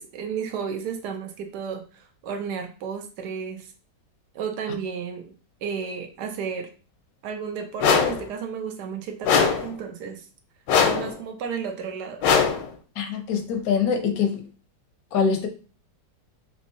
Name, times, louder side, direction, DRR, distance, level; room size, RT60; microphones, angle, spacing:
voice 1, 0.0-1.8 2.2-3.7 4.3-5.3 5.6-6.7 7.2-10.2 10.8-12.3, right 6 dB, 75° right, 6 dB, 1.1 m, -32 dB
sound 1, 7.8-8.3 9.2-9.7 10.7-11.2 12.2-12.7, left 6 dB, 85° left, 1.3 m, -20 dB
voice 2, 13.0-14.5 15.1-15.5, left 6 dB, 65° left, 5 dB, 0.9 m, -24 dB
3.4 x 3.0 x 2.6 m, 0.35 s
omnidirectional pair, 1.9 m